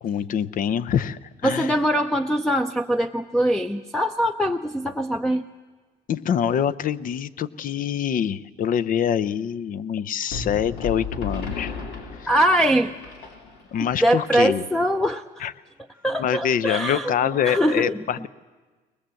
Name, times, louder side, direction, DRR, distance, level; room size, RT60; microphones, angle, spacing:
voice 1, 0.0-1.8 6.1-11.7 12.2-12.3 13.7-14.6 15.4-15.5 16.2-18.3, left 8 dB, 55° left, 17 dB, 0.7 m, -25 dB
voice 2, 1.4-5.4 12.3-12.9 14.0-15.5 16.0-17.1 17.4-17.9, equal, 5° left, 7 dB, 0.6 m, -22 dB
sound 1, 10.3-13.8, left 5 dB, 75° left, 2.7 m, -34 dB
22.0 x 20.5 x 7.7 m, 1.3 s
cardioid pair, 110°, 17 cm